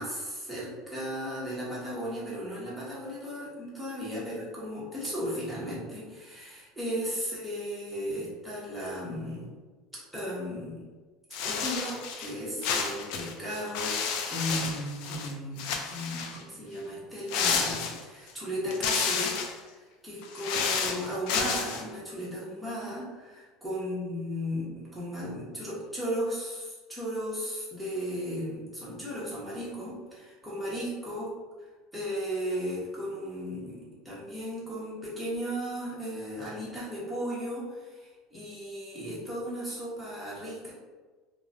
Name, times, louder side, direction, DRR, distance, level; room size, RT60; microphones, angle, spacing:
voice 1, 0.0-9.5 10.1-10.9 11.4-31.3 31.9-40.7, equal, ahead, -8 dB, 0.9 m, -35 dB
sound 1, 11.3-12.3 12.6-15.3 15.6-16.4 17.3-18.3 18.7-19.6 20.2-21.8, left 6 dB, 65° left, 0.3 m, -31 dB
3.0 x 2.1 x 2.5 m, 1.4 s
cardioid pair, 140°, 0 cm